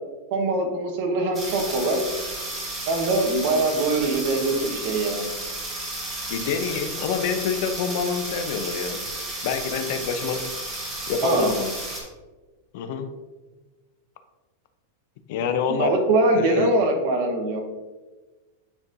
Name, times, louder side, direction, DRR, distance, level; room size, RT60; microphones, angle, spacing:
voice 1, 0.3-2.0 2.9-5.3 11.2-11.5 15.7-17.6, right 2 dB, 50° right, 3 dB, 1.2 m, -23 dB
sound 1, 1.3-12.0, right 2 dB, 15° right, 1.4 m, -33 dB
voice 2, 6.3-9.0 9.4-10.5 11.1-11.7 12.7-13.1 15.3-16.0 16.3-16.8, left 6 dB, 50° left, 8 dB, 0.6 m, -27 dB
9.6 x 4.3 x 2.7 m, 1.2 s
supercardioid pair, 170°, 0 cm